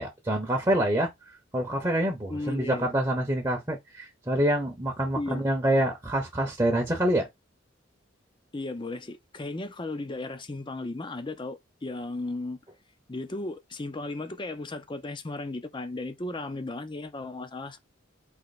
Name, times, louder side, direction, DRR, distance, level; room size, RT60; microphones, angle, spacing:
voice 1, 0.0-7.3, right 1 dB, 15° right, 0.8 m, -26 dB
voice 2, 2.3-2.9 5.2-5.4 8.5-12.6 13.1-17.8, left 2 dB, 25° left, 0.5 m, -35 dB
4.3 x 2.9 x 4.1 m
head